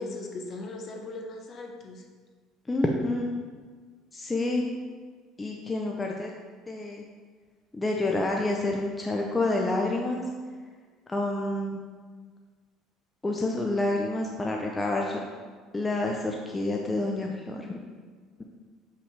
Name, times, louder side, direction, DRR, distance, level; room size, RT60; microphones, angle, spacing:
voice 1, 0.0-2.0, left 2 dB, 45° left, 2 dB, 1.0 m, -38 dB
voice 2, 2.7-3.3 4.1-4.7 5.4-6.4 6.7-7.1 7.7-10.2 11.1-11.8 13.2-15.2 15.7-17.8, left 2 dB, 15° left, 0 dB, 0.6 m, -28 dB
6.8 x 5.7 x 3.3 m, 1.5 s
cardioid pair, 115°, 0 cm